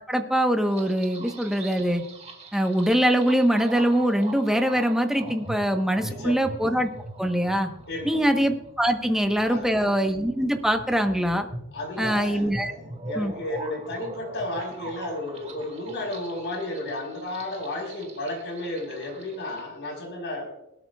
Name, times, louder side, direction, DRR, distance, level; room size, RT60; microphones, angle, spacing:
voice 1, 0.1-2.0 2.5-6.9 7.2-7.7 8.0-11.5 12.0-12.7 13.2-13.3, equal, ahead, 5 dB, 1.1 m, -23 dB
sound 1, 0.6-19.7, right 2 dB, 30° right, 2.0 m, -42 dB
voice 2, 6.0-6.5 7.9-8.2 9.0-9.2 9.5-9.7 11.7-20.5, left 1 dB, 55° left, 1 dB, 5.2 m, -33 dB
20.5 x 13.0 x 2.4 m, 0.85 s
head